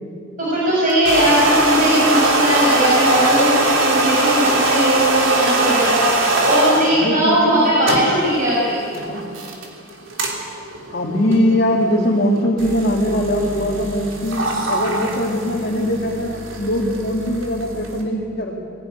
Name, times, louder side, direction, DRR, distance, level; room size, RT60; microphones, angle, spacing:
voice 1, 0.4-6.1 6.4-8.8, equal, 40° right, -7 dB, 6.3 m, -18 dB
sound 1, 0.9-6.9 7.6-18.0, right 2 dB, 75° right, 3.5 m, -22 dB
voice 2, 6.9-7.7 9.0-9.2 10.9-18.6, equal, 50° left, -2 dB, 2.1 m, -21 dB
20.5 x 17.5 x 9.8 m, 2.3 s
head